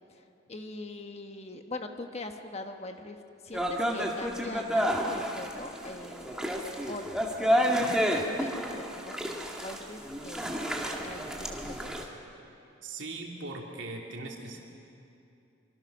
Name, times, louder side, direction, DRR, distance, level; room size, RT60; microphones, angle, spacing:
voice 1, 0.5-3.2 3.4-6.6 6.9-10.5 11.0-12.1, left 2 dB, 35° left, 5 dB, 1.3 m, -42 dB
sound 1, 3.5-12.0, equal, 5° right, 2.0 m, -30 dB
voice 2, 12.8-14.6, right 2 dB, 75° right, 0 dB, 3.1 m, -39 dB
25.5 x 25.0 x 6.4 m, 2.7 s
head